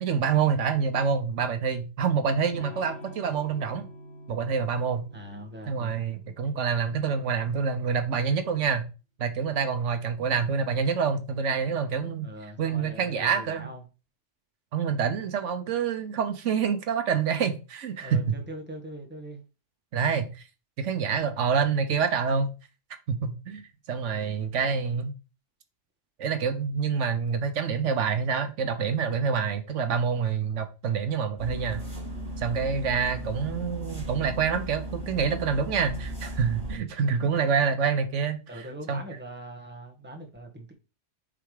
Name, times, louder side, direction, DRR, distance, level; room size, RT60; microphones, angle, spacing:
voice 1, 0.0-3.9 4.3-5.0 5.7-8.9 9.2-12.3 12.6-13.7 14.7-18.3 19.9-20.4 20.8-22.5 23.1-25.1 26.2-31.8 32.4-38.4 38.9-39.0, right 6 dB, 80° right, 1.2 m, -27 dB
Electric guitar / Strum, 2.5-8.2, equal, 45° left, 2.1 m, -47 dB
voice 2, 5.1-6.0 10.2-10.3 12.2-13.8 18.0-19.4 33.1-33.6 38.5-40.7, right 1 dB, 10° right, 1.3 m, -42 dB
sound 1, 31.4-36.8, right 1 dB, 60° right, 3.4 m, -36 dB
7.4 x 3.5 x 4.8 m
omnidirectional pair, 1.2 m